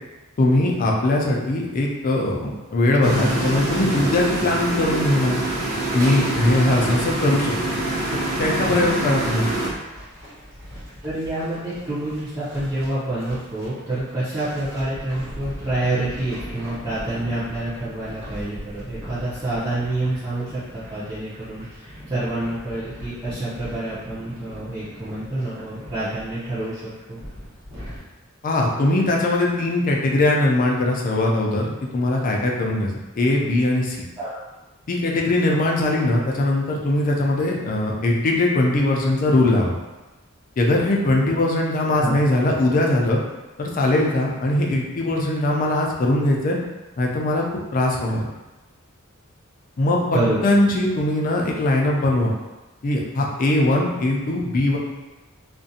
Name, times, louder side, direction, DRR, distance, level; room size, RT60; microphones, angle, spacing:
voice 1, 0.4-5.4 5.9-7.5 8.4-9.5 28.4-34.0 34.9-39.8 40.6-43.2 43.6-46.6 47.0-47.4 47.7-48.3 49.8-52.3 52.8-54.8, left 1 dB, 40° left, -1 dB, 0.4 m, -20 dB
sound 1, 3.0-9.7, right 1 dB, 75° right, 0.6 m, -25 dB
sound 2, 9.5-28.0, equal, 55° right, 1.1 m, -40 dB
voice 2, 11.0-27.2 34.2-34.4 41.9-42.2 50.1-50.4, right 1 dB, 20° right, -13 dB, 0.5 m, -27 dB
2.4 x 2.1 x 2.7 m, 1.1 s
head